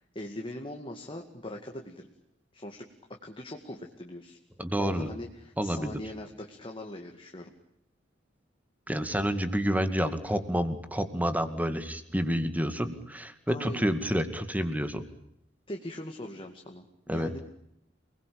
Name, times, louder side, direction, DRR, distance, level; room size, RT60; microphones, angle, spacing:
voice 1, 0.1-2.1 2.5-2.9 3.2-4.4 4.8-7.5 13.5-13.9 15.7-17.4, left 1 dB, 30° left, 2 dB, 2.3 m, -41 dB
voice 2, 4.6-5.1 5.6-6.0 8.9-15.0 17.1-17.3, equal, 10° right, 10 dB, 2.2 m, -29 dB
28.5 x 21.0 x 8.8 m, 0.77 s
head